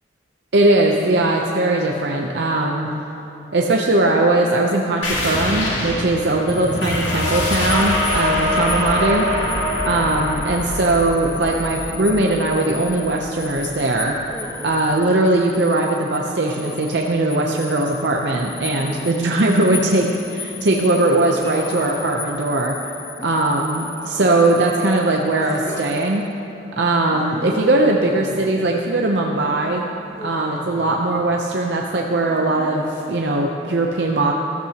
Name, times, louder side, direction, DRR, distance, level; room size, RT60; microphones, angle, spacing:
voice 1, 0.5-2.9 3.5-9.3 9.9-14.2 14.6-22.8 23.2-26.3 26.8-29.8 30.2-34.3, right 2 dB, 65° right, 0 dB, 0.7 m, -19 dB
sound 1, 5.0-14.2, left 1 dB, 90° left, 2.3 m, -24 dB
sound 2, 6.5-26.3, left 8 dB, 35° left, 0.5 m, -37 dB
Human voice, 14.1-14.9 16.3-17.0 18.6-19.4 20.9-22.1 23.2-24.7 25.4-25.9 27.1-28.7 30.1-31.3 32.3-33.2, equal, 15° left, 1.1 m, -39 dB
14.0 x 13.0 x 2.9 m, 2.8 s
head